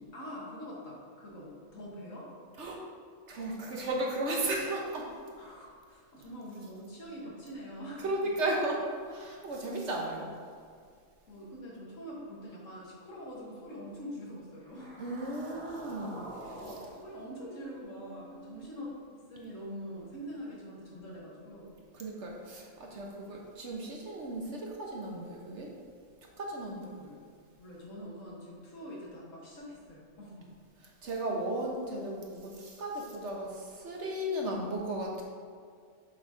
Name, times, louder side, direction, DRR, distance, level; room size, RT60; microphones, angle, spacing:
voice 1, 0.0-2.3 5.4-8.5 11.3-15.0 16.6-21.7 23.0-23.2 26.8-27.3 27.6-30.5, equal, 65° left, -4 dB, 1.9 m, -44 dB
voice 2, 3.3-5.1 8.0-10.3 15.0-16.6 21.9-25.7 26.4-26.9 31.0-35.2, right 1 dB, 60° right, -1 dB, 1.2 m, -35 dB
sound 1, 14.6-19.0, right 1 dB, 85° right, 2.3 m, -47 dB
7.2 x 4.1 x 4.8 m, 2.1 s
omnidirectional pair, 1.4 m